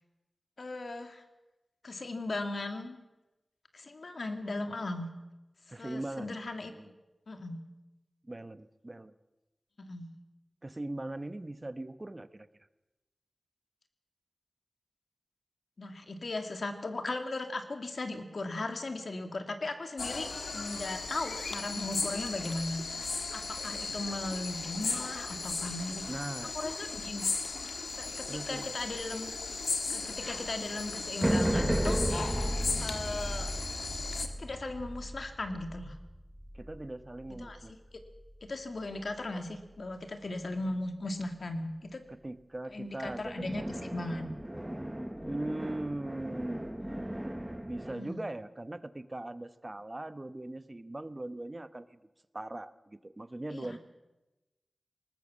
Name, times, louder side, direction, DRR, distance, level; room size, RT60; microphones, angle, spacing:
voice 1, 0.6-1.2 1.8-3.0 3.7-5.1 5.8-6.7 7.3-7.6 9.8-10.1 15.8-26.1 26.5-27.3 28.0-29.3 29.9-32.1 32.8-33.5 34.2-36.0 37.4-37.6 38.4-42.0 42.7-44.4 47.9-48.2 53.5-53.7, left 2 dB, 65° left, 6 dB, 2.5 m, -37 dB
voice 2, 5.7-6.3 6.7-6.9 8.2-9.1 10.6-12.5 26.1-26.5 28.3-28.7 36.5-37.7 42.1-43.6 45.3-46.7 47.6-52.0 52.3-53.8, right 2 dB, 30° right, 13 dB, 1.0 m, -40 dB
sound 1, 20.0-34.3, left 4 dB, 90° left, 1.6 m, -36 dB
sound 2, 31.2-37.7 43.0-47.9, equal, 10° right, 1.3 m, -34 dB
20.0 x 19.5 x 7.3 m, 1.0 s
wide cardioid pair, 70°, 0 cm